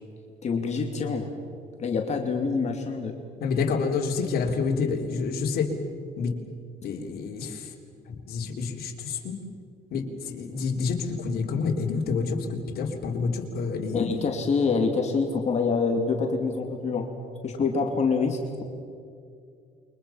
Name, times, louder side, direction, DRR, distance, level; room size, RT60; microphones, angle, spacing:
voice 1, 0.4-1.3 1.8-3.1 13.9-17.1 17.4-18.4, left 4 dB, 40° left, 2 dB, 2.7 m, -26 dB
voice 2, 3.4-5.7 6.2-6.3 6.8-7.6 8.1-9.4 9.9-14.1, left 5 dB, 65° left, 1 dB, 3.6 m, -28 dB
29.0 x 23.5 x 5.8 m, 2.4 s
cardioid pair, 110°, 17 cm